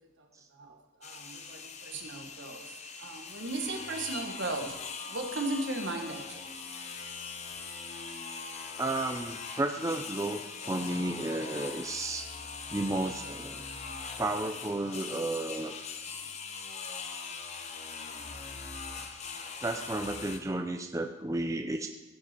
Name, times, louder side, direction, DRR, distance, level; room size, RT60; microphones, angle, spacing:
voice 1, 0.0-4.8 5.1-6.6, right 2 dB, 75° right, 3 dB, 1.5 m, -37 dB
sound 1, 1.0-20.4, left 5 dB, 35° left, 0.7 m, -41 dB
voice 2, 8.8-12.3 12.7-13.6 14.2-15.7 19.6-21.9, right 2 dB, 15° right, 5 dB, 0.5 m, -32 dB
15.5 x 5.8 x 4.4 m, 1.0 s
head